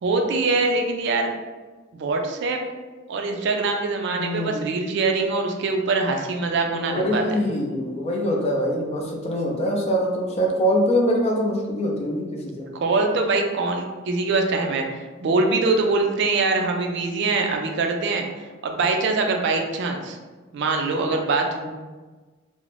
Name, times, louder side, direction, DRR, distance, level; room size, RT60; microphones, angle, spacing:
voice 1, 0.0-1.3 1.9-2.6 3.1-7.4 12.7-18.3 18.6-20.2 20.5-21.4, right 3 dB, 65° right, 3 dB, 0.3 m, -23 dB
voice 2, 4.1-4.6 6.7-12.7 21.5-21.7, equal, 35° left, -1 dB, 0.4 m, -24 dB
2.5 x 2.0 x 3.1 m, 1.3 s
head